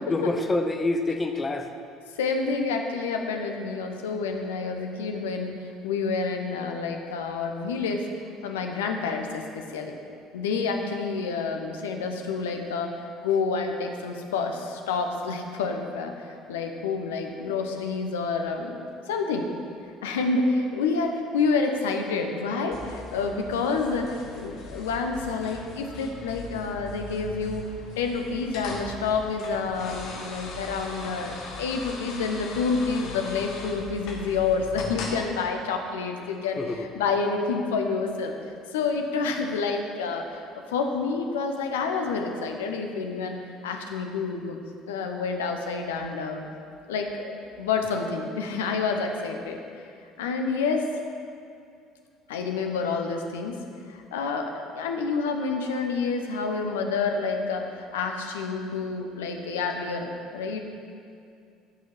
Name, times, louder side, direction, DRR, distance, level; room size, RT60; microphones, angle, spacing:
voice 1, 0.1-1.7 36.6-36.9, left 2 dB, 20° left, 6 dB, 1.0 m, -26 dB
voice 2, 2.2-5.6 5.8-8.1 8.4-10.0 10.3-19.5 20.0-27.7 28.0-38.3 38.7-44.6 44.9-46.4 46.9-49.6 50.2-50.8 52.3-53.6 53.9-60.6, left 4 dB, 70° left, 4 dB, 0.9 m, -28 dB
sound 1, 22.7-35.2, left 3 dB, 55° left, 1.5 m, -39 dB
14.5 x 6.4 x 5.5 m, 2.4 s
figure-of-eight pair, 60°, 0 cm